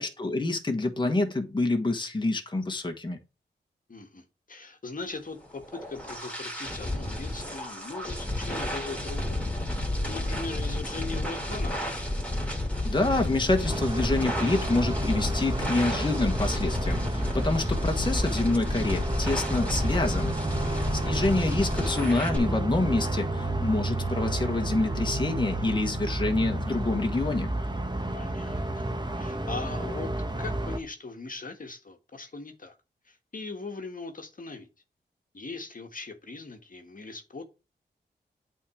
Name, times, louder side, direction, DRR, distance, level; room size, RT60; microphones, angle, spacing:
voice 1, 0.0-3.2 12.8-20.4 21.0-27.5, left 2 dB, 25° left, 1.4 m, -27 dB
voice 2, 3.9-9.5 10.1-11.8 28.1-28.9 29.1-30.1 30.4-32.7 33.0-34.7 35.3-37.4, left 3 dB, 50° left, 1.5 m, -40 dB
sound 1, 5.4-22.4, left 1 dB, 5° left, 2.8 m, -31 dB
sound 2, 13.6-30.8, right 2 dB, 25° right, 1.3 m, -31 dB
8.5 x 3.8 x 4.9 m
cardioid pair, 45°, 19 cm